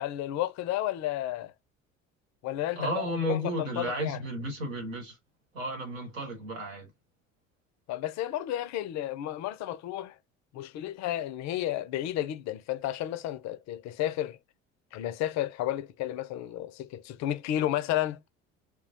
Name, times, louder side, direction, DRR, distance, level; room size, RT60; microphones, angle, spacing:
voice 1, 0.0-1.5 2.4-4.2 7.9-10.2 10.5-14.4 14.9-18.2, left 13 dB, 50° left, 0.4 m, -32 dB
voice 2, 2.8-5.2 5.5-6.9, equal, 85° right, 1.2 m, -33 dB
2.2 x 2.1 x 2.7 m
hypercardioid pair, 65°, 38 cm